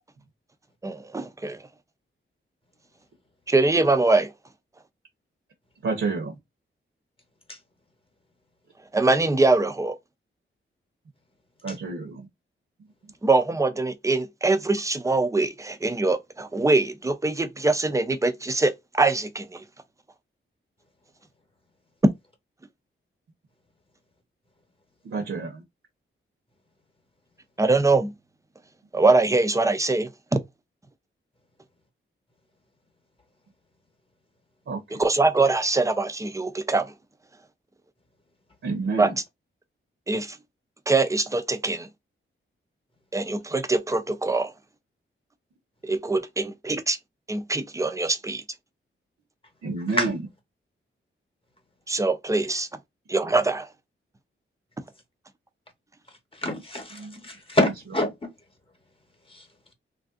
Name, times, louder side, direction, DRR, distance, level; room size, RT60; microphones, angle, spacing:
voice 1, 0.8-1.6 3.5-4.3 8.9-10.0 13.2-19.6 27.6-28.1 28.9-30.4 34.9-36.9 39.0-39.1 40.1-40.4 40.9-41.9 43.1-44.5 45.8-47.0 47.3-48.4 51.9-52.7 53.1-53.7, right 3 dB, 15° right, 0.4 m, -23 dB
voice 2, 5.8-6.3 11.6-12.3 25.1-25.6 34.7-34.8 38.6-39.1 49.6-50.2 57.0-57.1, right 3 dB, 65° right, 0.8 m, -29 dB
voice 3, 56.4-58.3, left 1 dB, 25° left, 0.9 m, -26 dB
3.2 x 2.5 x 2.4 m
wide cardioid pair, 115°, 21 cm